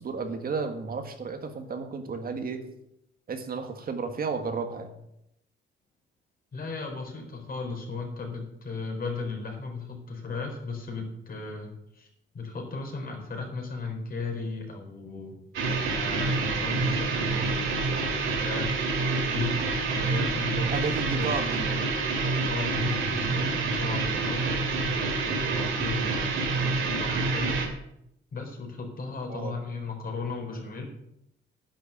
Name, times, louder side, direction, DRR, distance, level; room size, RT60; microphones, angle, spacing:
voice 1, 0.0-2.6 3.3-4.9 20.7-21.7 29.3-29.5, right 4 dB, 50° right, 6 dB, 1.6 m, -32 dB
voice 2, 6.5-12.1 12.3-15.3 15.8-18.9 19.2-19.5 19.9-21.9 22.4-24.4 24.8-27.6 28.3-30.9, left 4 dB, 45° left, 1 dB, 4.1 m, -36 dB
sound 1, 15.5-27.7, right 4 dB, 85° right, 2.3 m, -27 dB
10.5 x 6.4 x 8.0 m, 0.79 s
cardioid pair, 90°, 20 cm